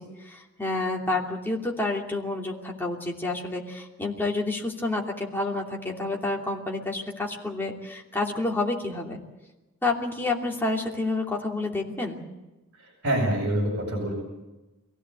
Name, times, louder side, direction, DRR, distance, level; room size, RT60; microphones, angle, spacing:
voice 1, 0.3-9.2 9.8-12.2, left 2 dB, 10° left, -1 dB, 2.8 m, -29 dB
voice 2, 13.0-14.1, right 1 dB, 55° right, -4 dB, 6.5 m, -25 dB
23.5 x 16.5 x 8.2 m, 1.1 s
head